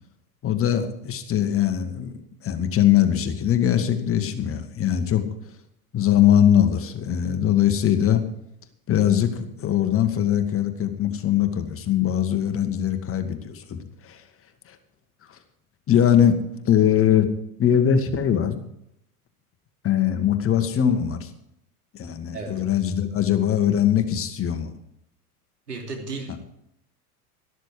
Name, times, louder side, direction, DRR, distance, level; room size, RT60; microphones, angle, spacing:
voice 1, 0.4-2.1 2.4-5.2 5.9-8.2 8.9-14.2 14.7-14.8 15.3-15.4 15.9-16.4 16.6-17.3 17.6-18.6 19.8-21.3 21.9-24.7, left 10 dB, 30° left, 7 dB, 1.7 m, -21 dB
voice 2, 25.7-26.4, right 4 dB, 85° right, 1 dB, 3.2 m, -33 dB
13.0 x 12.5 x 4.9 m, 0.76 s
figure-of-eight pair, 85°, 46 cm